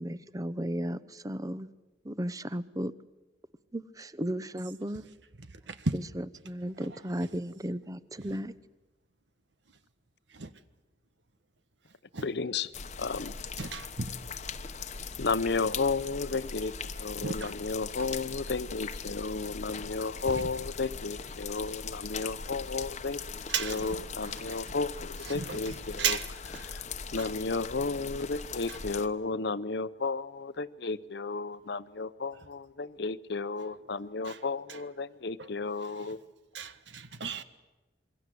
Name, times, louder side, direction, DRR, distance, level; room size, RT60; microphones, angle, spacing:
voice 1, 0.0-1.7 2.0-2.9 3.7-5.1 5.9-8.5, equal, 20° right, 0.8 m, -35 dB
voice 2, 12.2-12.7 13.0-13.3 15.2-26.2 26.6-26.8 27.1-36.2, left 4 dB, 65° left, 0.8 m, -33 dB
sound 1, 12.7-29.1, left 5 dB, 40° left, 1.0 m, -40 dB
voice 3, 13.6-14.1 17.2-17.5 23.5-24.0 24.4-24.5 25.3-25.6 26.0-26.3 34.3-34.4 36.5-37.4, right 5 dB, 85° right, 1.4 m, -33 dB
27.0 x 22.5 x 7.8 m
head